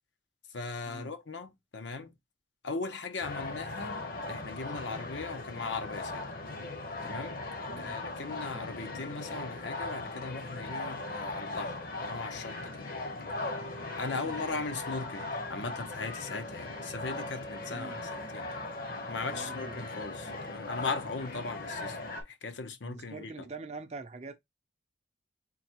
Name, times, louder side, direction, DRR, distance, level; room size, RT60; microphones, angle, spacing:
voice 1, 0.5-2.1 2.6-6.3 7.0-7.4 7.8-12.9 14.0-18.5 19.1-22.0 22.2-23.5, left 4 dB, 75° left, 0.8 m, -38 dB
sound 1, 3.2-22.2, left 2 dB, 50° left, 1.0 m, -39 dB
voice 2, 7.7-8.0 14.1-14.3 17.7-18.0 19.3-19.8 22.8-24.4, right 3 dB, 35° right, 0.5 m, -44 dB
Wind instrument woodwind instrument, 16.3-21.0, equal, 25° left, 0.6 m, -48 dB
3.9 x 2.2 x 4.4 m
head